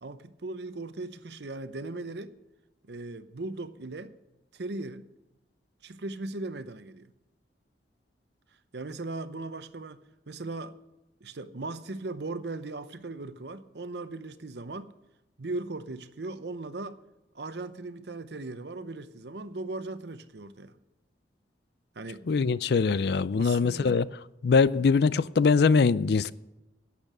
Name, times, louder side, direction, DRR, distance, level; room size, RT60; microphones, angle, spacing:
voice 1, 0.0-2.4 2.8-4.1 4.5-5.1 5.8-7.1 8.7-10.0 10.3-10.7 11.2-14.9 15.4-17.0 17.3-20.8 21.9-22.2 23.3-24.0, right 2 dB, 65° right, 0.8 m, -38 dB
voice 2, 22.3-24.1 24.4-26.3, left 5 dB, 65° left, 0.4 m, -22 dB
12.0 x 8.6 x 6.2 m
head